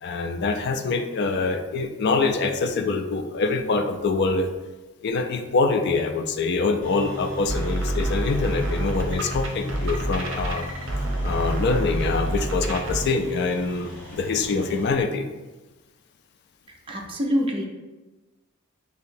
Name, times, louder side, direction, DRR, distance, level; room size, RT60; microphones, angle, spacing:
voice 1, 0.0-4.5 5.0-10.7 11.2-15.3, left 4 dB, 50° left, 6 dB, 0.3 m, -25 dB
sound 1, 6.8-14.9, left 1 dB, 75° left, 1.5 m, -38 dB
sound 2, 7.4-13.0, right 1 dB, 65° right, 0.7 m, -27 dB
voice 2, 16.9-17.7, equal, 25° right, 1 dB, 0.5 m, -25 dB
3.0 x 2.8 x 4.3 m, 1.2 s
head